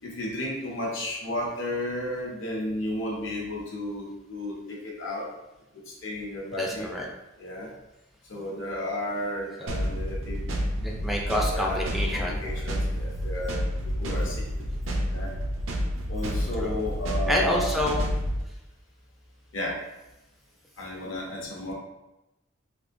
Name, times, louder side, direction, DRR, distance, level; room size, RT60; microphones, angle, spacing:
voice 1, 0.0-5.3 5.9-6.9 7.4-7.7 8.3-10.5 11.5-13.6 14.0-14.6 15.1-15.3 16.1-17.7 19.5-19.8 20.8-21.7, left 1 dB, 70° left, -3 dB, 0.9 m, -33 dB
voice 2, 6.5-7.1 10.8-12.6 16.6-16.8 17.3-18.0, equal, ahead, -2 dB, 0.3 m, -28 dB
sound 1, 9.7-18.4, equal, 75° right, 0.5 m, -29 dB
3.4 x 2.6 x 2.6 m, 0.97 s
head